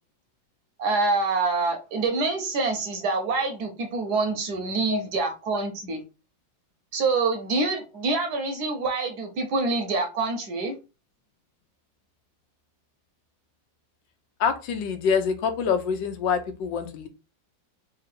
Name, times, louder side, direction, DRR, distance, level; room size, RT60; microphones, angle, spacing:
voice 1, 0.8-6.0 6.9-10.7, right 3 dB, 65° right, 1.1 m, -26 dB
voice 2, 14.4-17.1, left 6 dB, 75° left, 1.3 m, -26 dB
3.6 x 2.7 x 4.1 m
omnidirectional pair, 2.1 m